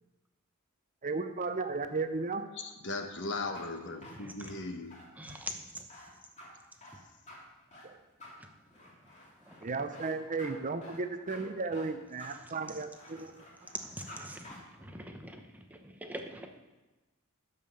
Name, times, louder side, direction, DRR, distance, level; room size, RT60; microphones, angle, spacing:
voice 1, 1.0-2.4 7.8-8.0 9.6-13.4, right 3 dB, 35° right, 8 dB, 0.7 m, -34 dB
voice 2, 2.6-5.0, left 3 dB, 55° left, 5 dB, 1.2 m, -38 dB
sound 1, 3.3-14.2 14.4-14.6, left 1 dB, 35° left, 2.7 m, -52 dB
voice 3, 4.0-4.6 5.2-5.9 9.4-9.8 10.3-10.4 12.2-12.5 13.7-16.5, right 1 dB, 5° right, 4 dB, 1.0 m, -45 dB
11.5 x 5.6 x 7.1 m, 1.1 s
head